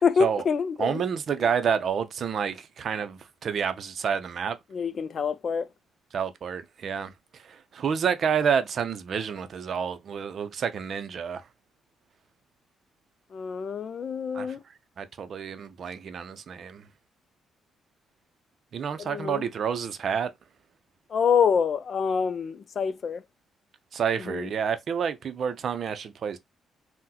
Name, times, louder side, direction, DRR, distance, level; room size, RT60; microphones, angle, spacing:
voice 1, 0.0-1.0 4.7-5.7 13.3-14.6 19.0-19.4 21.1-23.2 24.2-24.5, left 6 dB, 50° left, 0.3 m, -26 dB
voice 2, 0.8-4.6 6.1-7.1 7.4-11.4 14.3-14.5 15.0-16.9 18.7-20.3 23.9-26.4, right 7 dB, 55° right, 0.5 m, -29 dB
3.7 x 2.1 x 2.7 m
cardioid pair, 90°, 0 cm